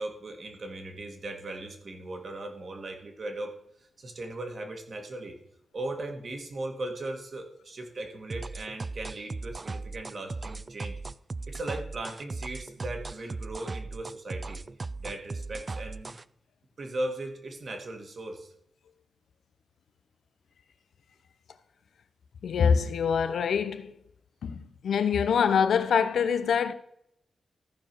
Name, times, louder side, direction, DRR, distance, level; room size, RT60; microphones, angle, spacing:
voice 1, 0.0-5.4 5.7-11.0 11.5-14.6 15.0-16.2 16.8-18.5, right 2 dB, 50° right, 1.8 m, -38 dB
sound 1, 8.3-16.2, right 3 dB, 35° right, 0.3 m, -37 dB
voice 2, 22.4-23.9 24.4-26.7, left 7 dB, 85° left, 0.7 m, -25 dB
14.0 x 4.8 x 6.0 m
wide cardioid pair, 100°, 0 cm